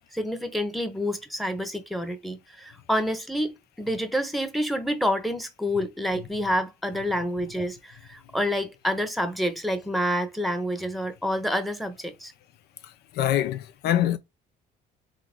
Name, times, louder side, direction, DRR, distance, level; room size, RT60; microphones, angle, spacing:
voice 1, 0.1-12.3, equal, ahead, 1.0 m, -28 dB
voice 2, 12.8-14.2, left 12 dB, 75° left, 0.7 m, -25 dB
3.7 x 3.3 x 3.7 m
cardioid pair, 110°, 17 cm